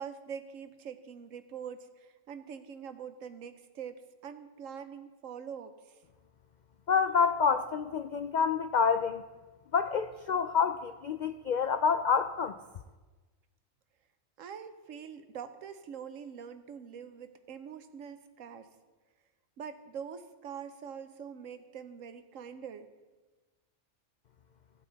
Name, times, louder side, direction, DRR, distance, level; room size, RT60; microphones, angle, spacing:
voice 1, 0.0-6.0 14.4-18.7 19.6-22.9, right 7 dB, 85° right, 10 dB, 1.2 m, -44 dB
voice 2, 6.9-9.2 9.7-12.6, left 6 dB, 85° left, 9 dB, 0.4 m, -28 dB
16.5 x 8.6 x 4.0 m, 1.3 s
omnidirectional pair, 1.3 m